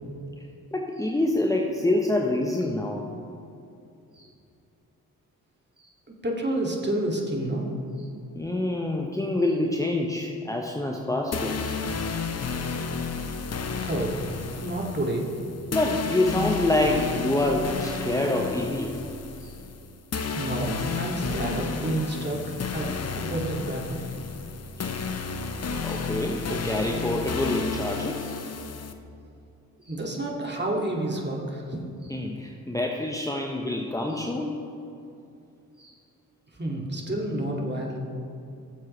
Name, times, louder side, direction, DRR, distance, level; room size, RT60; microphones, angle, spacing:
voice 1, 0.7-3.1 4.2-4.3 5.8-5.9 8.4-11.7 15.7-19.0 19.4-19.5 24.8-24.9 25.8-28.4 29.9-30.0 32.1-34.5 35.8-35.9, left 1 dB, 10° left, 0 dB, 1.0 m, -26 dB
voice 2, 6.2-7.9 13.7-14.2 14.5-15.3 20.3-24.0 29.9-31.8 36.6-38.0, right 1 dB, 25° right, -1 dB, 2.3 m, -29 dB
sound 1, 11.3-28.9, left 4 dB, 35° left, 0.9 m, -32 dB
17.0 x 7.4 x 3.3 m, 2.6 s
hypercardioid pair, 45°, 44 cm